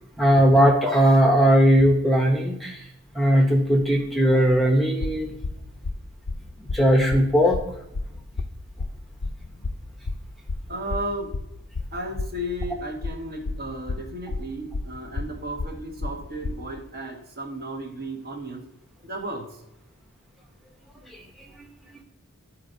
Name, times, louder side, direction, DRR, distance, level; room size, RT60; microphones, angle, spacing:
voice 1, 0.2-2.8 3.1-5.4 6.7-7.6 21.1-21.2, equal, ahead, 0 dB, 0.7 m, -18 dB
sound 1, 5.0-16.7, left 3 dB, 65° left, 0.5 m, -31 dB
voice 2, 10.7-11.4 11.9-18.7 19.0-19.6, right 1 dB, 45° right, 2 dB, 1.2 m, -34 dB
12.5 x 4.4 x 2.6 m, 0.81 s
head